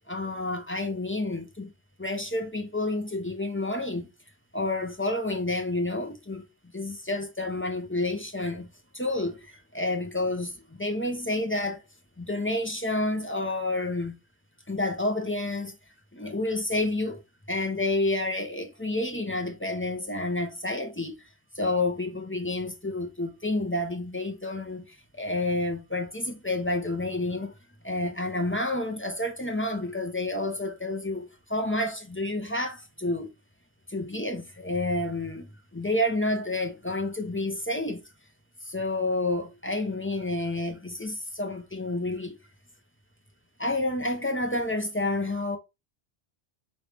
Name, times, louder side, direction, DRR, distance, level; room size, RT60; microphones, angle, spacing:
voice 1, 0.1-1.7 2.0-4.1 4.5-11.8 12.2-14.2 14.7-15.7 16.1-17.2 17.5-21.3 21.5-27.5 27.8-33.3 33.9-38.0 38.6-42.4 43.6-45.6, left 2 dB, 15° left, 0.5 m, -29 dB
4.0 x 3.2 x 3.3 m
omnidirectional pair, 1.1 m